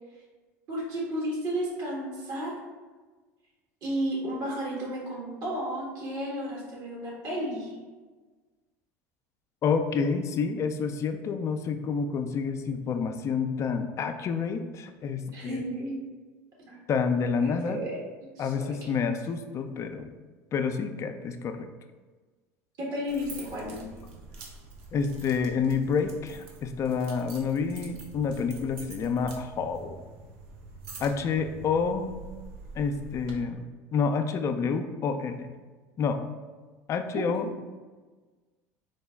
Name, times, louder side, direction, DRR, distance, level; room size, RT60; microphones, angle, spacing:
voice 1, 0.7-2.5 3.8-7.7 15.3-16.0 16.6-16.8 17.4-18.0 18.4-18.5 22.8-23.8 37.1-37.3, equal, 55° right, -3 dB, 1.3 m, -32 dB
voice 2, 9.6-15.6 16.9-17.8 18.4-20.1 20.5-21.7 24.9-30.0 31.0-32.2 32.8-35.5 36.0-36.2 36.9-37.5, left 5 dB, 40° left, 7 dB, 0.3 m, -28 dB
sound 1, 23.1-33.3, right 3 dB, 75° right, 0.5 m, -46 dB
3.8 x 2.0 x 3.4 m, 1.3 s
hypercardioid pair, 80°, 8 cm